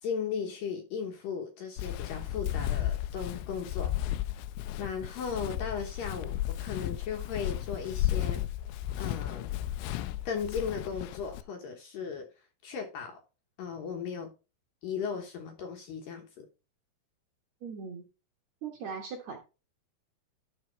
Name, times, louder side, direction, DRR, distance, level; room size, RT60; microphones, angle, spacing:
voice 1, 0.0-3.9 4.8-8.4 9.0-9.5 10.3-13.2 13.6-14.3 14.8-16.5, left 6 dB, 65° left, 2.4 m, -36 dB
Walk footsteps, 1.8-11.4, left 13 dB, 85° left, 2.8 m, -34 dB
voice 2, 17.6-18.1 18.6-19.4, right 5 dB, 85° right, 1.5 m, -39 dB
12.5 x 4.2 x 4.3 m
omnidirectional pair, 5.0 m